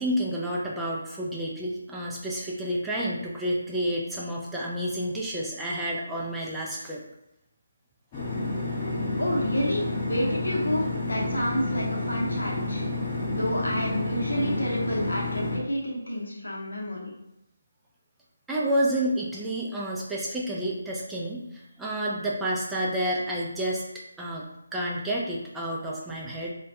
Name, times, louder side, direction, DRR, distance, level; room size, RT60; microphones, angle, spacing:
voice 1, 0.0-7.0 18.5-23.8 24.2-24.5 24.7-26.5, right 1 dB, 5° right, -5 dB, 0.3 m, -29 dB
sound 1, 8.1-15.6, left 2 dB, 20° left, 0.8 m, -29 dB
voice 2, 9.2-12.8 13.3-17.1, equal, 80° left, -3 dB, 0.7 m, -29 dB
2.2 x 2.2 x 2.6 m, 0.84 s
figure-of-eight pair, 155°, 0 cm